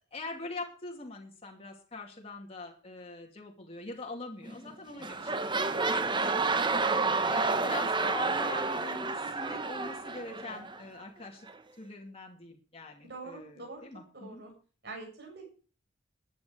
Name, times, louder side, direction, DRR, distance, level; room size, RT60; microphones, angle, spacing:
voice 1, 0.1-6.4 7.3-11.5 11.8-14.4, left 2 dB, 30° left, 0 dB, 2.6 m, -43 dB
sound 1, 4.4-4.7 5.0-10.8 11.5-11.6, right 3 dB, 25° right, 1.2 m, -30 dB
voice 2, 6.9-7.3 7.6-7.8 13.0-13.8 14.1-14.5 14.8-15.4, right 3 dB, 60° right, 1 dB, 7.3 m, -44 dB
15.0 x 10.5 x 5.1 m, 0.39 s
head